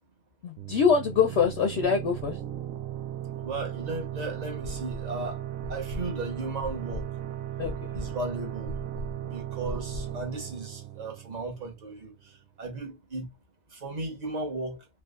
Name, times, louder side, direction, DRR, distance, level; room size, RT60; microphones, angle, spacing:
voice 1, 0.4-2.4 7.6-8.0, left 6 dB, 65° left, 0.7 m, -24 dB
sound 1, 0.6-12.0, right 12 dB, 90° right, 1.0 m, -37 dB
voice 2, 3.4-7.1 7.9-8.8 9.2-13.3 13.7-14.8, right 2 dB, 35° right, 1.1 m, -36 dB
sound 2, 4.6-5.2 5.6-10.2, left 1 dB, 60° right, 1.1 m, -39 dB
3.4 x 2.9 x 2.4 m
omnidirectional pair, 1.4 m